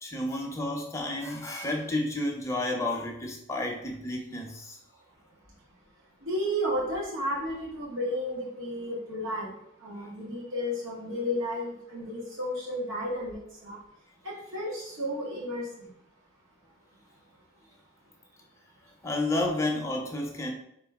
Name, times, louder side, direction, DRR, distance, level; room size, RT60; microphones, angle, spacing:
voice 1, 0.0-4.8 19.0-20.5, left 1 dB, 15° left, 0 dB, 0.6 m, -31 dB
voice 2, 5.4-5.8 6.2-13.8 14.2-15.9, equal, 80° right, -5 dB, 1.3 m, -33 dB
4.1 x 3.0 x 3.5 m, 0.76 s
head